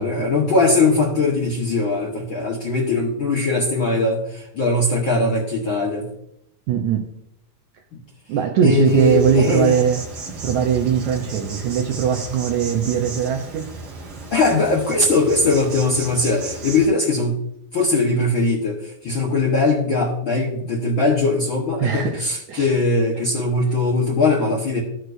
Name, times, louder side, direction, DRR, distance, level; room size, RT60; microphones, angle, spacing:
voice 1, 0.0-6.1 7.9-8.0 8.6-9.8 14.3-17.4 17.7-24.8, left 3 dB, 60° left, 1.3 m, -20 dB
voice 2, 6.7-7.2 8.3-10.0 10.4-13.7 21.8-22.2 22.5-22.7, right 7 dB, 75° right, 1.8 m, -20 dB
Insect, 8.8-16.9, right 3 dB, 45° right, 2.0 m, -34 dB
15.0 x 6.3 x 2.6 m
omnidirectional pair, 4.0 m